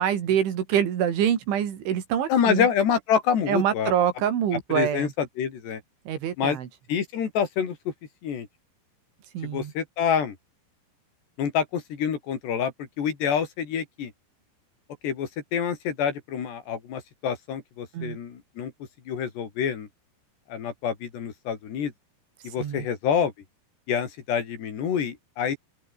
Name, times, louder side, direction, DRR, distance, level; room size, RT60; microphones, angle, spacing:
voice 1, 0.0-2.7 3.5-5.1 6.1-6.7 9.3-9.7 17.9-18.2 22.6-22.9, right 9 dB, 70° right, 5.1 m, -25 dB
voice 2, 2.3-3.9 4.7-5.8 6.4-6.6 6.9-7.9 8.2-8.5 9.4-10.4 11.4-14.1 15.0-18.7 19.1-19.9 20.5-21.9 22.4-23.3 23.9-25.6, left 7 dB, 60° left, 5.1 m, -27 dB
open air
omnidirectional pair, 5.6 m